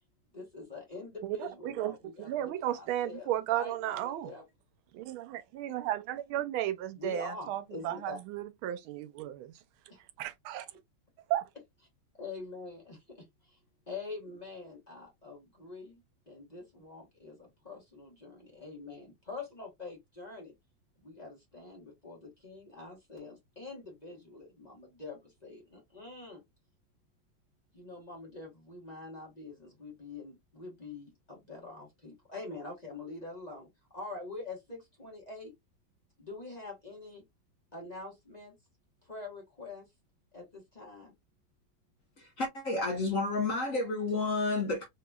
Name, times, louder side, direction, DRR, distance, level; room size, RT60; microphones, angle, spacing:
voice 1, 0.3-4.4 7.0-8.2 9.9-10.0 12.2-13.6 13.9-16.0 16.3-20.5 21.0-26.4 27.7-33.7 33.9-35.5 36.2-37.2 37.7-38.5 39.0-39.9 40.3-41.2, left 3 dB, 25° left, 1.0 m, -45 dB
voice 2, 1.2-4.3 4.9-9.5 10.2-10.7 11.3-11.5, right 13 dB, 85° right, 1.4 m, -34 dB
voice 3, 42.2-44.9, left 3 dB, 50° left, 1.1 m, -31 dB
3.8 x 2.9 x 2.3 m
omnidirectional pair, 2.2 m